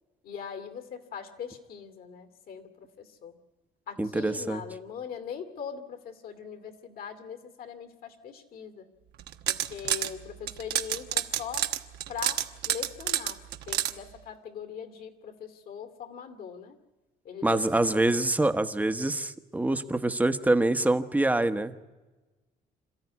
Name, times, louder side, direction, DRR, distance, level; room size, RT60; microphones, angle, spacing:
voice 1, 0.2-3.4 3.9-8.9 9.5-11.7 12.1-13.4 13.7-16.8 17.2-18.2, left 7 dB, 60° left, 9 dB, 2.4 m, -41 dB
voice 2, 4.0-4.6 17.4-21.8, right 2 dB, 10° right, 9 dB, 1.0 m, -25 dB
sound 1, 9.2-10.1 10.5-13.9, right 12 dB, 80° right, 1.2 m, -29 dB
27.0 x 14.0 x 9.6 m, 1.2 s
cardioid pair, 110°, 17 cm